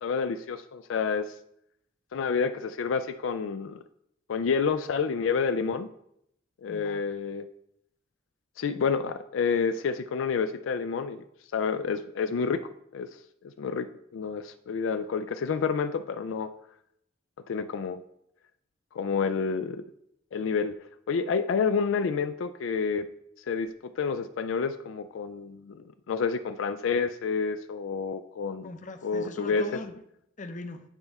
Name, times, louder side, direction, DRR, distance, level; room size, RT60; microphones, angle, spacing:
voice 1, 0.0-1.3 2.1-3.8 4.3-5.9 6.6-7.5 8.6-11.2 11.5-12.6 12.9-13.1 13.4-13.9 14.1-16.5 17.5-18.0 18.9-19.8 20.3-20.8 21.1-23.1 23.5-28.7 29.0-29.6, left 5 dB, 80° left, 10 dB, 0.4 m, -29 dB
voice 2, 6.7-7.0 28.6-30.0 30.4-30.8, left 2 dB, 40° left, 7 dB, 0.7 m, -40 dB
8.9 x 3.5 x 5.3 m, 0.75 s
head